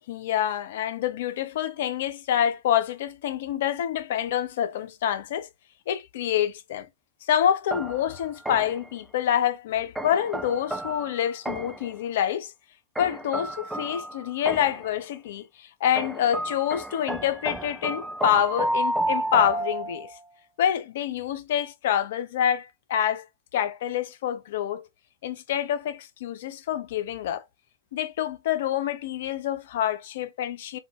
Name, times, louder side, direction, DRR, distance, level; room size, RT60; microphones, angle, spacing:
voice 1, 0.1-5.5 5.9-6.9 7.3-12.5 13.0-20.1 20.6-23.2 23.5-24.9 25.2-27.4 27.9-30.8, left 10 dB, 55° left, 0.5 m, -27 dB
sound 1, 7.7-8.9 10.0-11.9 13.0-14.9 16.0-20.2, right 1 dB, 5° right, 0.4 m, -31 dB
4.0 x 2.6 x 3.0 m
figure-of-eight pair, 90°, 0 cm